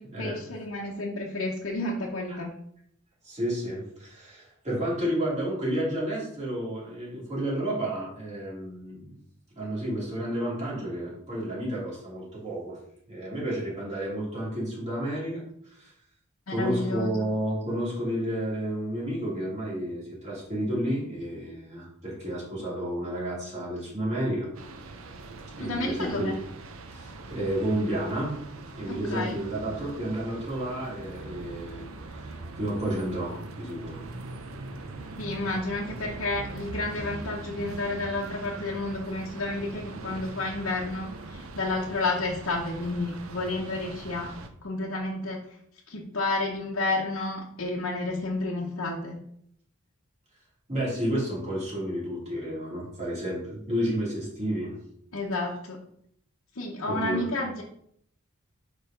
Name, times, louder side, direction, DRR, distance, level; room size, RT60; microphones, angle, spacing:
voice 1, 0.0-2.5 16.5-17.3 25.6-26.4 28.9-29.4 35.2-44.3 44.6-45.6 45.9-49.2 55.1-55.8 56.5-57.6, left 2 dB, 70° left, -3 dB, 0.9 m, -31 dB
voice 2, 3.2-9.1 9.5-12.8 13.1-15.9 16.5-24.5 25.6-26.3 26.9-28.3 28.7-34.0 50.7-54.8 56.9-57.2, right 1 dB, 35° right, -6 dB, 2.9 m, -31 dB
sound 1, 24.5-44.5, right 3 dB, 80° right, 0.7 m, -41 dB
5.0 x 4.6 x 5.1 m, 0.70 s
head